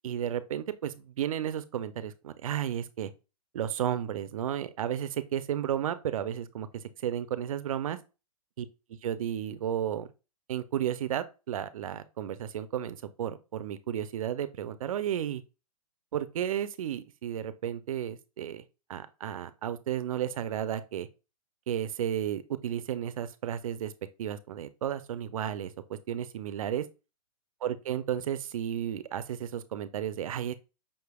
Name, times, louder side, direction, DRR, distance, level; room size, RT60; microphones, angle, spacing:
voice 1, 0.0-3.1 3.5-8.0 8.6-8.7 9.0-10.1 10.5-15.4 16.1-18.6 18.9-21.1 21.7-23.9 24.2-26.9 27.6-30.5, right 10 dB, 60° right, 0.5 m, -33 dB
5.4 x 3.3 x 2.3 m
hypercardioid pair, 160°, 20 cm